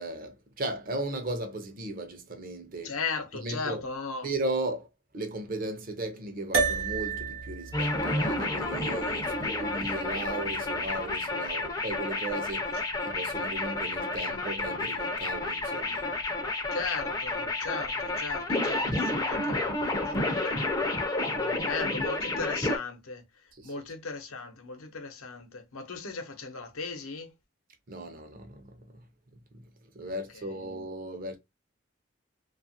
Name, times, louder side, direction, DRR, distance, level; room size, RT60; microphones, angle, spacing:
voice 1, 0.0-3.0 3.3-3.8 4.2-4.9 5.1-16.1 21.3-21.6 23.5-23.7 27.9-29.1 29.3-31.4, right 2 dB, 40° right, 0.5 m, -36 dB
voice 2, 2.8-4.3 8.9-9.7 16.7-21.0 21.6-23.2 23.6-27.3 30.3-30.6, left 4 dB, 85° left, 0.7 m, -37 dB
sound 1, 6.5-11.1, right 4 dB, 75° right, 0.9 m, -33 dB
sound 2, 7.7-22.8, left 2 dB, 15° left, 0.4 m, -30 dB
2.7 x 2.4 x 2.6 m
head